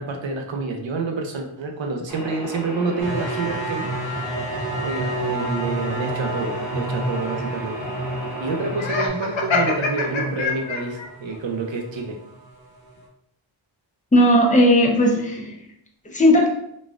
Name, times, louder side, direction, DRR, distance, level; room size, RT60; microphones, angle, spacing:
voice 1, 0.0-3.9 4.4-7.8 8.4-12.2, right 3 dB, 70° right, 3 dB, 0.7 m, -28 dB
sound 1, 2.1-9.1, right 1 dB, 45° left, 0.8 m, -36 dB
sound 2, 3.0-11.6 11.9-12.4, right 1 dB, 50° right, 0.9 m, -30 dB
Laughter, 8.8-11.1, left 4 dB, 70° left, 0.7 m, -24 dB
voice 2, 14.1-15.6 16.1-16.5, equal, 15° left, -1 dB, 0.6 m, -16 dB
4.0 x 2.4 x 2.3 m, 0.76 s
wide cardioid pair, 100°, 47 cm